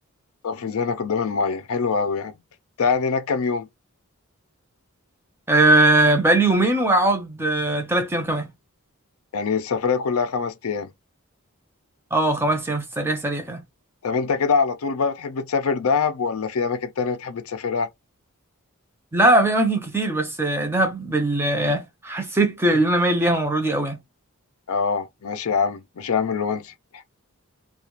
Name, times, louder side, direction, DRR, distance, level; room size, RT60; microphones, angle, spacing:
voice 1, 0.4-2.3 2.8-3.7 9.3-10.9 14.0-17.9 24.7-26.7, left 5 dB, 70° left, 0.5 m, -24 dB
voice 2, 5.5-8.5 12.1-13.6 19.1-24.0, right 2 dB, 10° right, 0.5 m, -20 dB
2.4 x 2.3 x 2.9 m
head